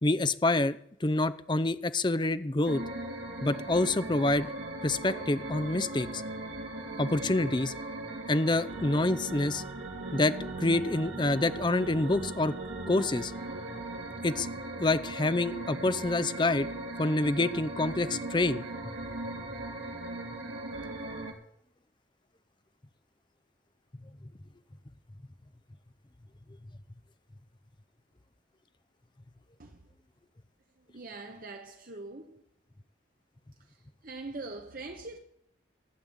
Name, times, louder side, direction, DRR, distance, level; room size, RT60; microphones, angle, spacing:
voice 1, 0.0-2.8 3.4-4.5 4.8-6.2 7.0-7.7 8.3-9.6 10.1-12.5 12.9-13.3 14.2-14.5 14.8-16.7 17.0-18.6, left 2 dB, 25° left, 0.6 m, -27 dB
sound 1, 2.7-21.3, right 2 dB, 85° right, 2.8 m, -38 dB
voice 2, 30.8-32.5 33.6-35.2, right 3 dB, 50° right, 1.2 m, -43 dB
15.5 x 8.8 x 8.0 m
head